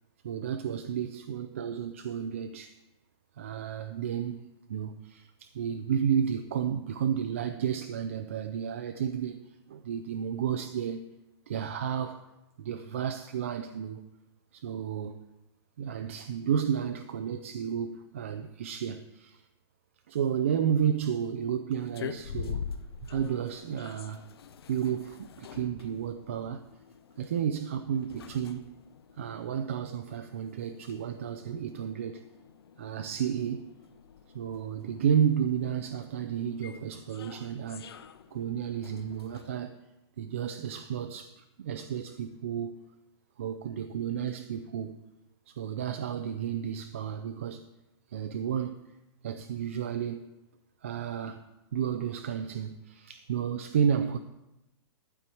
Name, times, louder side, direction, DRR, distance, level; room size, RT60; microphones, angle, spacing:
voice 1, 0.2-2.8 3.4-4.4 4.7-11.1 11.5-12.3 12.6-14.0 14.5-15.2 15.8-19.5 20.1-22.7 23.0-24.3 24.7-26.6 27.2-28.7 29.1-32.2 32.8-33.7 34.3-37.9 38.3-39.7 40.2-42.8 43.4-45.0 45.5-47.7 48.1-48.8 49.2-50.3 50.8-51.5 51.7-54.2, right 8 dB, 30° right, 0.3 m, -32 dB
sound 1, 21.8-39.5, left 7 dB, 60° left, 0.6 m, -46 dB
12.0 x 4.6 x 8.4 m
hypercardioid pair, 180°, 14 cm